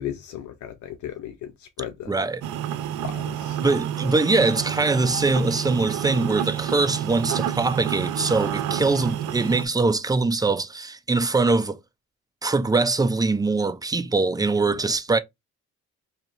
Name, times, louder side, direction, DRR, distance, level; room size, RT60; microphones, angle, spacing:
voice 1, 0.0-2.1 3.0-3.6, left 10 dB, 75° left, 0.7 m, -35 dB
voice 2, 2.1-2.4 3.6-11.8 12.4-15.2, right 3 dB, 15° right, 0.5 m, -22 dB
sound 1, 2.4-9.7, right 10 dB, 85° right, 0.6 m, -29 dB
2.8 x 2.8 x 3.9 m
cardioid pair, 90°, 30 cm